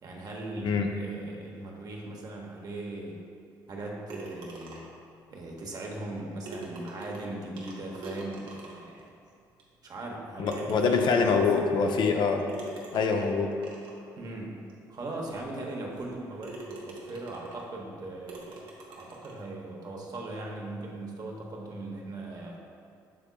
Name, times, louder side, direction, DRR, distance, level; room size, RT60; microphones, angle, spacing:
voice 1, 0.0-3.2 3.7-4.9 5.3-9.1 9.8-11.9 14.1-14.6 14.9-22.6, right 2 dB, 45° right, -1 dB, 0.9 m, -39 dB
sound 1, 4.1-5.1 6.1-6.2 6.4-9.0 9.6-9.7 10.4-11.4 12.5-14.0 14.7-14.8 15.3-15.4 15.9-16.1 16.4-17.7 18.3-19.4, right 2 dB, 80° right, 0.8 m, -44 dB
voice 2, 10.4-12.5 12.9-13.5, left 5 dB, 60° left, 3 dB, 0.5 m, -25 dB
6.7 x 3.5 x 2.2 m, 2.5 s
supercardioid pair, 65°, 9 cm